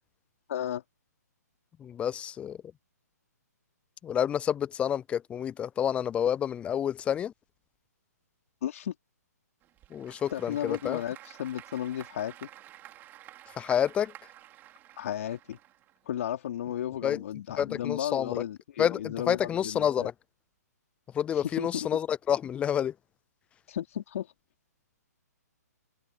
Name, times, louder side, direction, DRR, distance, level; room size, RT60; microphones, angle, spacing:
voice 1, 0.5-0.8 8.6-8.9 10.3-12.5 15.0-15.6 16.1-20.1 21.4-22.0 23.7-24.3, left 11 dB, 55° left, 3.3 m, -34 dB
voice 2, 1.8-2.6 4.0-7.3 9.9-11.0 13.6-14.1 17.0-17.2 17.6-18.3 18.8-20.1 21.1-22.9, left 9 dB, 10° left, 0.5 m, -29 dB
Applause / Crowd, 9.6-16.2, right 14 dB, 20° right, 5.2 m, -51 dB
hypercardioid pair, 140°, 9 cm